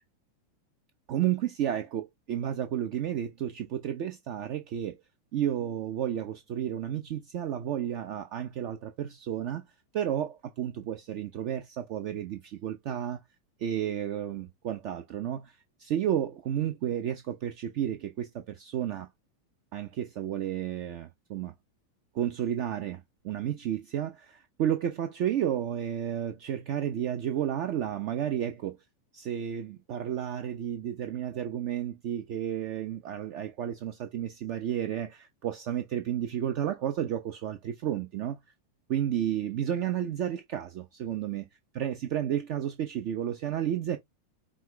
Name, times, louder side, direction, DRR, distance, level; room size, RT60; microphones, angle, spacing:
voice 1, 1.1-5.0 5.3-9.6 9.9-13.2 13.6-19.1 19.7-21.5 22.1-28.8 29.1-38.4 38.9-41.4 41.7-44.0, right 10 dB, 45° right, 0.6 m, -32 dB
5.6 x 2.4 x 3.2 m
figure-of-eight pair, 90°, 0 cm